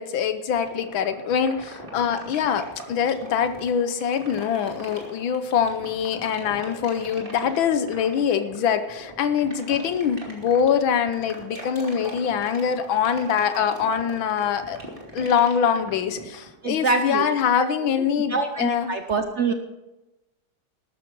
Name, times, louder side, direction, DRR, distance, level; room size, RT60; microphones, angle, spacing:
voice 1, 0.0-14.8 15.1-18.9, left 7 dB, 85° left, 10 dB, 1.7 m, -24 dB
sound 1, 0.6-16.5, right 1 dB, 25° right, 2.5 m, -40 dB
voice 2, 16.6-17.2 17.6-19.5, right 4 dB, 55° right, 6 dB, 0.8 m, -25 dB
12.5 x 12.5 x 4.6 m, 0.99 s
omnidirectional pair, 2.1 m